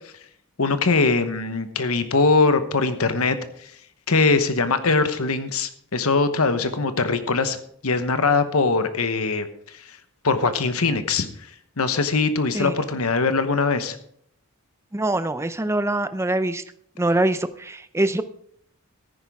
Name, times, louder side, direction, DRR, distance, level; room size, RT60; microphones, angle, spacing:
voice 1, 0.6-3.4 4.1-7.6 7.8-9.5 9.8-10.0 10.2-11.3 11.8-14.0, left 4 dB, 75° left, 10 dB, 1.1 m, -21 dB
voice 2, 14.9-16.6 17.0-18.2, right 1 dB, 10° right, 12 dB, 0.5 m, -23 dB
14.0 x 10.0 x 3.6 m, 0.66 s
head